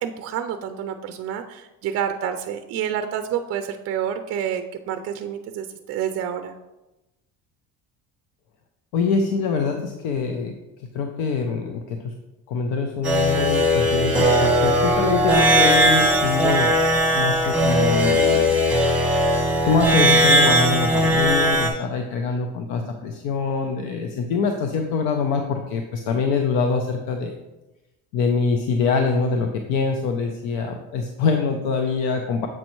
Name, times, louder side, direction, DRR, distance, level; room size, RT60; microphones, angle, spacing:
voice 1, 0.0-6.5, right 9 dB, 45° right, 7 dB, 0.4 m, -28 dB
voice 2, 8.9-10.5 10.9-12.1 12.5-16.7 17.1-18.5 19.6-27.3 28.1-32.5, left 5 dB, 85° left, 4 dB, 0.7 m, -24 dB
sound 1, 13.0-21.7, equal, 5° right, 1.3 m, -18 dB
7.5 x 5.3 x 3.0 m, 1.0 s
cardioid pair, 140°, 35 cm